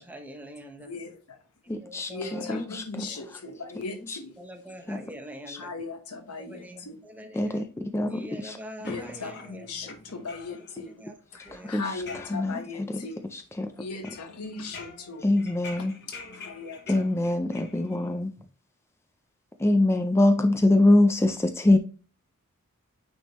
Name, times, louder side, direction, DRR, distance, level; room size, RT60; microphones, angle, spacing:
voice 1, 0.0-0.9 1.6-2.8 3.1-3.6 4.4-5.7 6.4-7.7 8.1-9.9 10.5-11.2 11.4-11.7, equal, 5° right, 0.9 m, -44 dB
voice 2, 0.8-1.4 2.1-4.3 5.6-7.0 8.8-11.1 11.3-13.2 13.8-15.2 15.8-17.0, left 4 dB, 85° left, 1.2 m, -38 dB
voice 3, 1.7-3.1 4.1-4.2 4.9-5.0 5.5-5.6 7.3-8.6 8.9-9.0 11.5-13.7 15.2-16.0 16.9-18.3 19.6-21.8, left 2 dB, 10° left, 0.4 m, -24 dB
sound 1, 8.8-10.8 11.1-12.8 13.1-13.6 14.0-18.1, left 4 dB, 50° left, 1.1 m, -46 dB
9.1 x 3.6 x 3.0 m
head